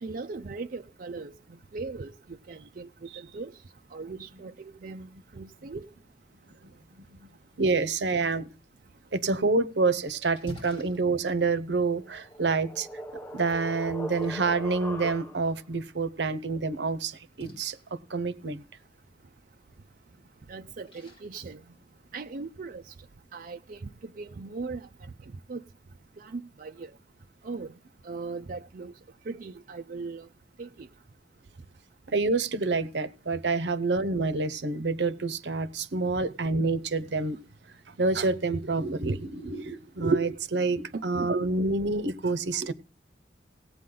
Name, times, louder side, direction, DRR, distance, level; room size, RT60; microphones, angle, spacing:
voice 1, 0.0-1.3 1.7-3.5 3.9-5.9 20.5-21.6 22.1-22.9 23.3-25.1 25.5-25.6 26.2-26.9 27.4-27.7 28.0-28.9 29.3-30.3 30.6-30.9 40.9-41.0, right 4 dB, 50° right, 0.5 m, -39 dB
voice 2, 7.6-8.5 9.1-12.9 13.3-18.6 32.1-37.4 38.0-42.7, right 3 dB, 80° right, 0.8 m, -27 dB
Splash splatter, 9.6-22.4, equal, 35° left, 4.1 m, -53 dB
sound 1, 12.0-15.7, right 1 dB, 10° left, 0.9 m, -40 dB
17.0 x 8.4 x 3.9 m
head